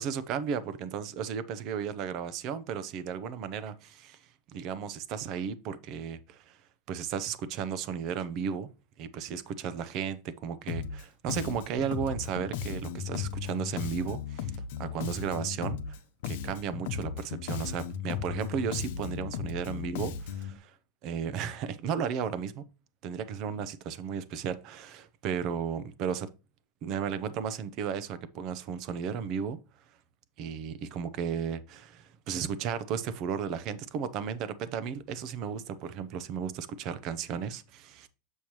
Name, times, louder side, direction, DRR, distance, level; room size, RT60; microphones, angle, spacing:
voice 1, 0.0-4.2 4.5-6.6 6.9-8.7 9.0-16.0 16.3-20.8 21.0-22.6 23.0-26.3 26.8-29.6 30.4-38.1, right 7 dB, 40° right, 0.7 m, -34 dB
Bass guitar, 10.7-11.0 11.3-16.0 16.2-20.6, left 8 dB, 70° left, 0.8 m, -36 dB
7.0 x 6.4 x 3.0 m
supercardioid pair, 150°, 0 cm